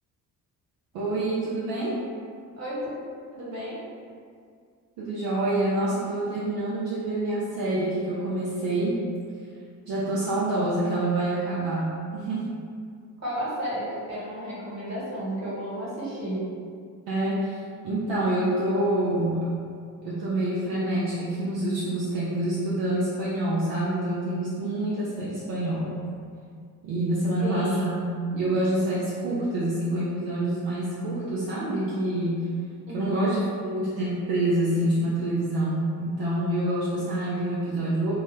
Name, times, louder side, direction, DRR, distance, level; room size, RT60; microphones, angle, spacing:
voice 1, 0.9-2.0 5.0-9.0 9.9-12.5 17.1-17.6 17.8-19.5 20.0-26.0 26.8-28.0 28.3-32.5 32.9-38.1, right 1 dB, 70° right, -7 dB, 0.6 m, -27 dB
voice 2, 3.3-3.8 13.2-16.4 27.4-27.9 32.9-33.3, right 1 dB, 35° right, -8 dB, 1.3 m, -32 dB
2.2 x 2.1 x 3.1 m, 2.2 s
hypercardioid pair, 45°, 45 cm